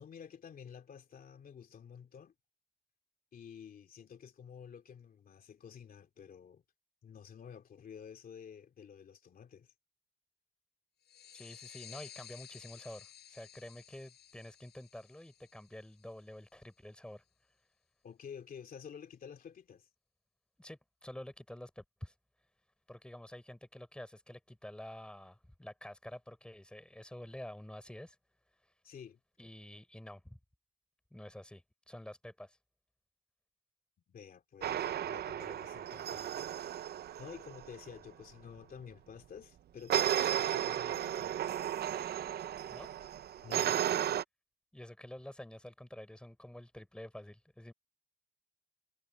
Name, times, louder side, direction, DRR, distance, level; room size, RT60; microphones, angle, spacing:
voice 1, 0.0-2.3 3.3-6.6 7.0-9.7 11.2-11.3 18.0-19.9 28.8-29.2 34.1-36.9 37.2-41.6 43.4-43.8, left 7 dB, 60° left, 2.7 m, -51 dB
sound 1, 11.0-16.4, left 10 dB, 75° left, 7.0 m, -54 dB
voice 2, 11.3-17.2 20.6-22.1 22.9-28.2 29.4-30.4 31.1-32.6 42.7-42.9 44.7-47.7, left 1 dB, 5° left, 4.4 m, -49 dB
sound 2, 34.6-37.8 39.9-44.2, right 10 dB, 70° right, 0.8 m, -34 dB
cardioid pair, 100°, 17 cm